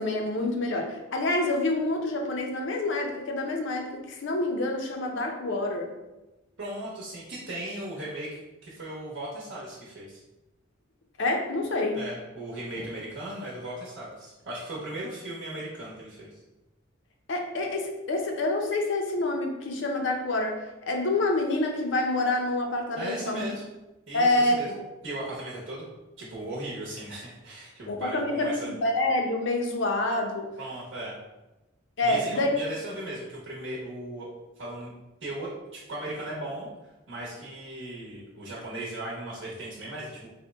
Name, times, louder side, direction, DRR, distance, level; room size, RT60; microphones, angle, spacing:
voice 1, 0.0-5.9 11.2-12.0 17.3-23.4 24.1-24.8 27.9-30.5 32.0-32.6, left 2 dB, 65° left, 2 dB, 0.6 m, -27 dB
voice 2, 6.6-10.2 11.9-16.4 23.0-23.6 24.1-24.7 25.0-25.8 26.2-28.7 30.6-31.1 32.0-34.3 34.6-34.9 35.2-36.7 37.1-40.3, right 1 dB, 65° right, -6 dB, 0.9 m, -37 dB
4.3 x 2.1 x 3.4 m, 1.0 s
head